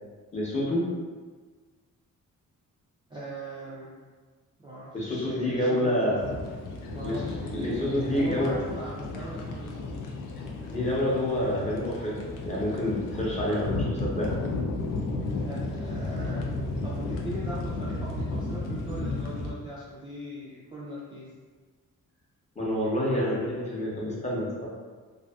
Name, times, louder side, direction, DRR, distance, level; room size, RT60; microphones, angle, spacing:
voice 1, 0.3-0.9 4.9-6.2 7.0-8.5 10.7-14.3 22.6-24.7, left 1 dB, 20° left, -6 dB, 0.7 m, -28 dB
voice 2, 3.1-3.9 4.6-6.1 6.9-9.9 15.4-16.4 16.8-21.2, right 1 dB, 15° right, -8 dB, 0.3 m, -39 dB
sound 1, 6.2-19.5, left 2 dB, 85° left, 0.5 m, -33 dB
2.5 x 2.5 x 2.2 m, 1.4 s
wide cardioid pair, 130°, 31 cm